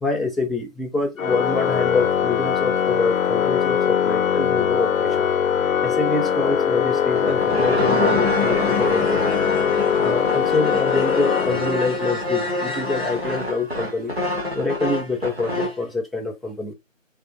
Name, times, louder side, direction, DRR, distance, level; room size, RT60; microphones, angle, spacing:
voice 1, 0.0-5.3 5.8-9.2 10.0-14.2 14.5-16.7, left 3 dB, ahead, 0.4 m, -26 dB
Organ, 1.2-12.1, left 8 dB, 80° left, 0.5 m, -22 dB
sound 1, 7.0-15.8, left 1 dB, 50° right, 1.4 m, -26 dB
4.1 x 3.4 x 2.7 m
figure-of-eight pair, 170°, 39 cm